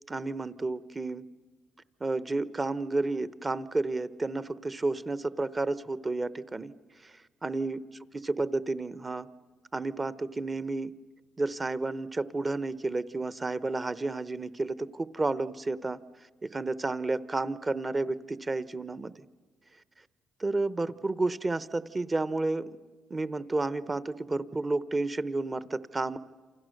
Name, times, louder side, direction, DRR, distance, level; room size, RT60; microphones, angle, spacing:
voice 1, 0.1-1.2 2.0-6.7 7.0-7.1 7.4-7.8 8.2-9.3 9.7-10.9 11.4-16.0 16.4-19.2 20.4-22.7 23.1-26.2, right 2 dB, 25° right, 15 dB, 0.9 m, -31 dB
28.0 x 28.0 x 6.6 m, 1.4 s
cardioid pair, 90°, 0 cm